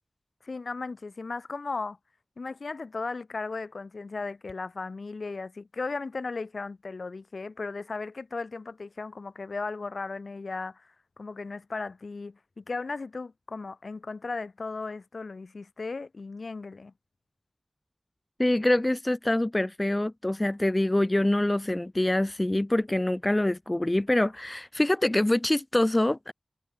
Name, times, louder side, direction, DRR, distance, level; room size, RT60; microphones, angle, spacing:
voice 1, 0.4-2.0 2.4-10.9 11.2-16.9, left 3 dB, 80° left, 2.5 m, -36 dB
voice 2, 18.4-26.3, left 1 dB, 25° left, 1.0 m, -25 dB
wide cardioid pair, 50°, 0 cm